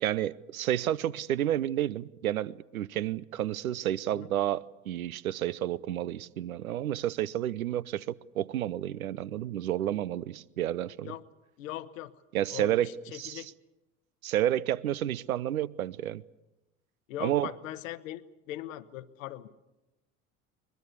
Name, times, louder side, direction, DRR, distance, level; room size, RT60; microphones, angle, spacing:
voice 1, 0.0-11.1 12.3-13.4 14.2-16.2 17.2-17.5, right 12 dB, 70° right, 0.8 m, -30 dB
voice 2, 11.6-12.1 12.5-13.5 17.1-19.5, left 13 dB, 60° left, 1.3 m, -40 dB
22.0 x 21.5 x 8.3 m
figure-of-eight pair, 75°, 44 cm